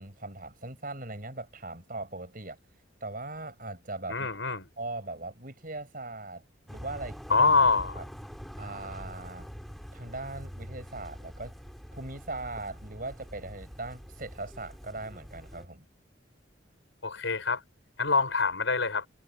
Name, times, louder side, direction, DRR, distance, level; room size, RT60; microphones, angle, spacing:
voice 1, 0.0-2.6 3.0-6.4 6.7-7.5 7.9-8.0 8.6-9.5 9.9-11.5 11.9-15.8, right 2 dB, 45° right, 6.3 m, -40 dB
voice 2, 4.1-4.7 7.3-8.0 17.0-17.6 18.0-19.1, left 4 dB, 85° left, 5.3 m, -25 dB
sound 1, 6.7-15.7, equal, ahead, 5.1 m, -44 dB
head